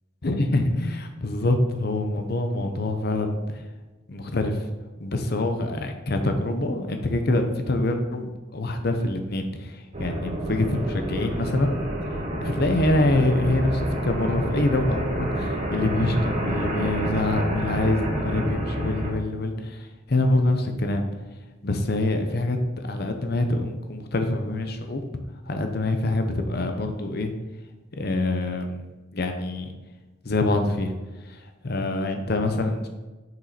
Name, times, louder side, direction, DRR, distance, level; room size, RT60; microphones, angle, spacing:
voice 1, 0.2-3.6 4.1-4.6 5.0-11.7 12.4-21.0 21.6-25.0 25.5-27.3 28.0-28.8 29.1-29.7 30.2-30.9 31.3-31.4 31.6-32.9, left 2 dB, 55° left, 6 dB, 0.8 m, -25 dB
sound 1, 9.9-19.1, right 1 dB, 35° right, 1.1 m, -28 dB
6.2 x 5.3 x 4.2 m, 1.2 s
head